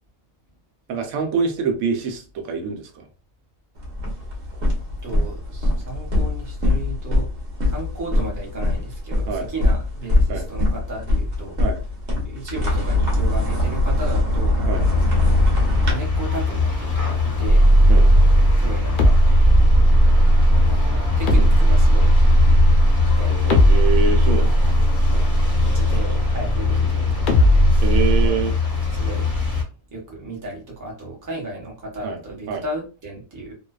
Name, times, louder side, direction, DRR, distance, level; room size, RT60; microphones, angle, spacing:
voice 1, 0.9-3.1 9.3-9.5 10.3-10.4 11.6-11.8 14.7-14.8 17.9-18.1 21.4-21.5 23.3-24.5 25.1-25.2 27.8-28.5 32.0-32.2 32.5-32.6, right 5 dB, 90° right, 5 dB, 1.0 m, -25 dB
sound 1, 3.8-15.9, left 1 dB, 60° right, 1.1 m, -22 dB
voice 2, 5.0-7.3 7.6-11.6 12.2-15.1 15.8-17.8 18.6-19.2 20.6-22.2 23.2-23.3 24.2-24.7 25.3-27.8 28.0-28.4 28.9-29.3 29.9-33.5, right 2 dB, 20° right, -2 dB, 0.6 m, -34 dB
sound 2, 14.7-29.6, left 4 dB, 15° left, 0.7 m, -22 dB
sound 3, 17.5-26.7 27.3-28.3, right 1 dB, 70° left, 0.4 m, -16 dB
2.5 x 2.2 x 2.2 m, 0.34 s
omnidirectional pair, 1.4 m